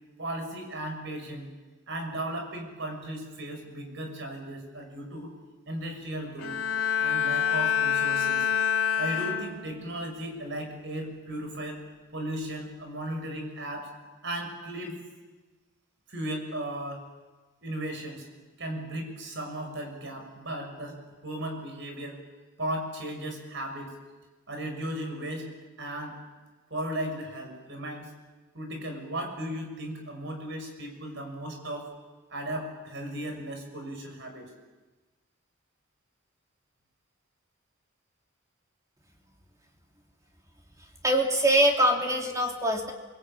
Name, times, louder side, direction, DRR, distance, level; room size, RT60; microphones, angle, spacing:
voice 1, 0.2-1.5 1.9-5.3 5.7-6.6 7.0-8.5 9.0-11.8 12.1-13.9 14.2-15.0 16.1-17.0 17.6-18.3 18.6-22.2 22.6-23.9 24.5-25.5 25.8-26.2 26.7-28.1 28.5-31.9 32.3-34.5, right 1 dB, 60° right, 4 dB, 6.4 m, -36 dB
Bowed string instrument, 6.4-10.0 10.4-10.8, left 8 dB, 80° left, 3.5 m, -27 dB
voice 2, 41.0-42.9, right 1 dB, 15° right, 1 dB, 3.4 m, -23 dB
28.0 x 22.5 x 8.9 m, 1.2 s
head